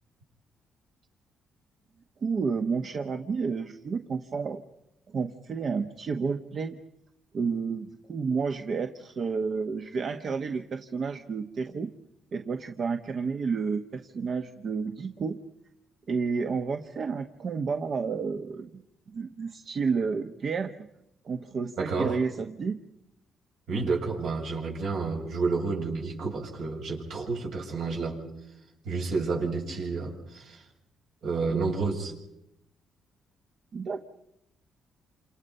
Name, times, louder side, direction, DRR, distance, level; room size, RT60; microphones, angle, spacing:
voice 1, 2.2-4.6 5.1-6.8 7.3-11.9 12.3-15.4 16.1-18.8 19.1-20.7 21.2-22.8 33.7-34.1, right 5 dB, 50° right, 7 dB, 1.3 m, -30 dB
voice 2, 21.8-22.2 23.7-28.2 28.8-30.6 31.2-32.1, right 4 dB, 75° right, -1 dB, 7.5 m, -30 dB
28.5 x 27.5 x 5.6 m, 0.85 s
cardioid pair, 90°, 0 cm